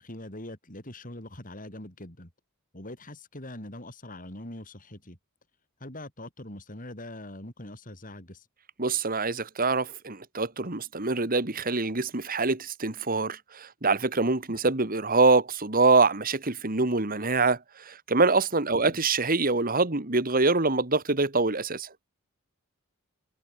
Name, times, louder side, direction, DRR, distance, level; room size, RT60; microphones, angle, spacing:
voice 1, 0.0-2.3 2.7-5.2 5.8-8.4 18.9-19.0, left 1 dB, 40° left, 5.6 m, -42 dB
voice 2, 8.8-21.9, right 3 dB, 40° right, 1.9 m, -25 dB
head